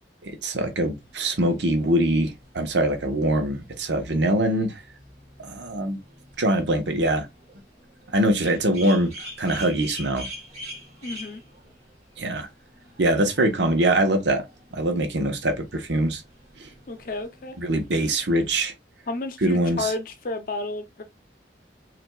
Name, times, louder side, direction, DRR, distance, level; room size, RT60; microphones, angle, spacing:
voice 1, 0.2-4.8 5.4-6.0 6.4-7.3 8.1-10.3 12.2-12.5 13.0-14.4 14.7-16.2 16.6-16.7 17.6-18.7 19.4-19.9, right 1 dB, 80° right, 1.0 m, -23 dB
sound 1, 1.0-18.6, equal, 35° right, 2.5 m, -46 dB
voice 2, 11.0-11.4 16.9-17.6 19.1-21.0, left 2 dB, 50° left, 0.6 m, -31 dB
5.7 x 2.5 x 2.3 m
head